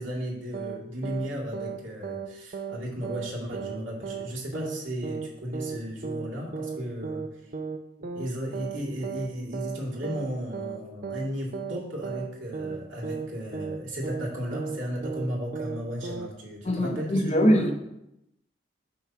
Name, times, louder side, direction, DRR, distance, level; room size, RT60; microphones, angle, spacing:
voice 1, 0.0-7.5 8.1-17.7, equal, 70° right, -4 dB, 2.2 m, -35 dB
sound 1, 0.5-1.3 1.5-1.8 2.0-2.3 2.5-2.8 3.0-3.3 3.5-3.8 4.0-4.3 4.5-4.8 5.0-5.3 5.5-5.8 6.0-6.3 6.5-6.8 7.0-7.3 7.5-7.8 8.0-8.3 8.5-8.8 9.0-9.3 9.5-9.8 10.0-10.3 10.5-10.8 11.0-11.3 11.5-11.8 12.0-12.3 12.5-12.8 13.0-13.3 13.5-13.8 14.0-14.3 14.5-14.8 15.0-15.3 15.5-15.8 16.0-16.3, right 5 dB, 45° right, 0.4 m, -34 dB
voice 2, 16.6-17.7, equal, 35° left, 4 dB, 0.7 m, -22 dB
5.7 x 4.4 x 5.9 m, 0.85 s
head